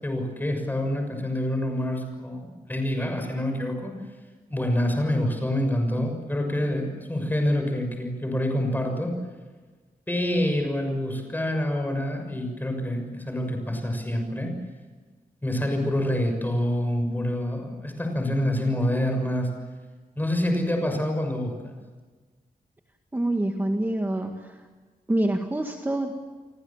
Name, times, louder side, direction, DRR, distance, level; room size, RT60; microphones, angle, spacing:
voice 1, 0.0-3.9 4.5-9.1 10.1-14.5 15.4-19.5 20.2-21.8, left 1 dB, 10° left, 4 dB, 6.5 m, -27 dB
voice 2, 23.1-24.6 25.1-26.1, right 1 dB, 15° right, 3 dB, 1.9 m, -26 dB
30.0 x 24.0 x 7.4 m, 1.4 s
wide cardioid pair, 170°, 15 cm